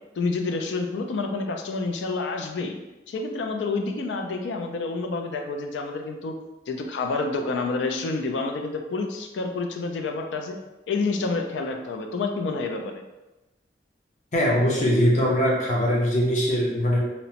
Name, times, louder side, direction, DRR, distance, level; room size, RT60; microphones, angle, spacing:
voice 1, 0.2-2.8 3.1-6.4 6.7-10.5 10.9-13.0, left 3 dB, 85° left, 4 dB, 0.4 m, -28 dB
voice 2, 14.3-17.0, equal, 40° left, -3 dB, 0.6 m, -21 dB
2.8 x 2.1 x 2.8 m, 1.0 s
head